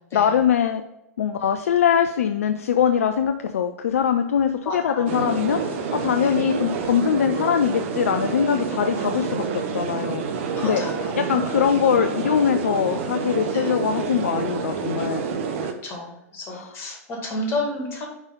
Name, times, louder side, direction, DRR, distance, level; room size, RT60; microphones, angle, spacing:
voice 1, 0.1-0.8 1.2-10.2 10.6-10.8 11.2-15.3 16.5-16.7, left 8 dB, 65° left, 7 dB, 0.4 m, -22 dB
voice 2, 4.7-5.1 6.2-6.4 10.5-11.4 13.5-13.7 15.8-18.0, left 2 dB, 30° left, 1 dB, 2.0 m, -31 dB
sound 1, 5.1-15.7, right 5 dB, 50° right, 0.8 m, -28 dB
5.4 x 4.7 x 3.8 m, 0.91 s
figure-of-eight pair, 100°, 8 cm